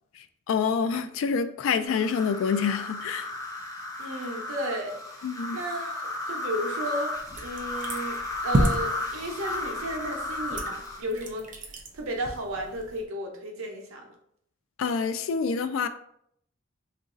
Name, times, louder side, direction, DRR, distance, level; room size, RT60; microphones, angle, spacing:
voice 1, 0.5-3.3 5.2-5.6 14.8-15.9, left 6 dB, 75° left, 0.3 m, -27 dB
sound 1, 1.9-11.0, left 2 dB, 15° left, 0.6 m, -34 dB
voice 2, 4.0-8.2 8.4-14.1, right 1 dB, 90° right, 0.8 m, -34 dB
sound 2, 7.1-13.0, right 1 dB, 40° right, 0.5 m, -32 dB
3.0 x 2.5 x 3.7 m
head